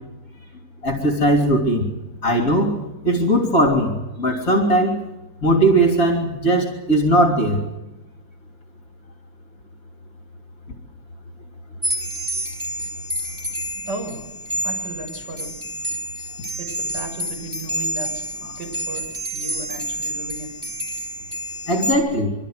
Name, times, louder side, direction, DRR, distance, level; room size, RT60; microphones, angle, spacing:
voice 1, 0.3-0.6 4.3-4.4 13.9-14.2 14.6-15.6 16.6-20.5, right 2 dB, 70° right, 2 dB, 7.6 m, -35 dB
voice 2, 0.8-1.9 2.2-2.8 3.0-5.0 5.4-7.6 21.7-22.3, right 1 dB, 50° left, 2 dB, 3.8 m, -19 dB
sound 1, 11.8-21.9, right 1 dB, 20° right, 4.8 m, -29 dB
28.5 x 24.0 x 6.7 m, 0.99 s
omnidirectional pair, 2.0 m